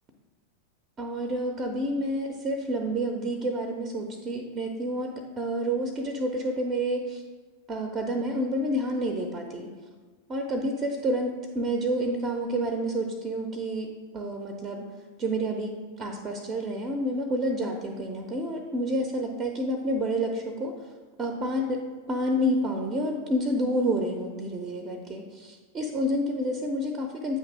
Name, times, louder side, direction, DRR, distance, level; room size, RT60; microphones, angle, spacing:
voice 1, 1.0-7.2 7.7-9.7 10.3-14.9 15.2-20.7 21.2-21.8 22.1-27.4, equal, 25° right, 4 dB, 0.7 m, -29 dB
8.7 x 3.3 x 5.0 m, 1.5 s
figure-of-eight pair, 90°, 0 cm